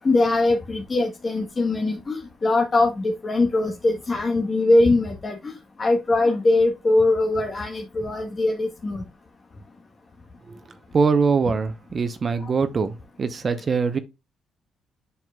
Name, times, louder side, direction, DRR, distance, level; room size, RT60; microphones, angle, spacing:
voice 1, 0.0-5.5 5.8-9.0, left 2 dB, 35° left, 1.4 m, -21 dB
voice 2, 10.9-14.0, right 5 dB, 40° right, 0.9 m, -23 dB
7.7 x 7.1 x 2.3 m
cardioid pair, 90°, 0 cm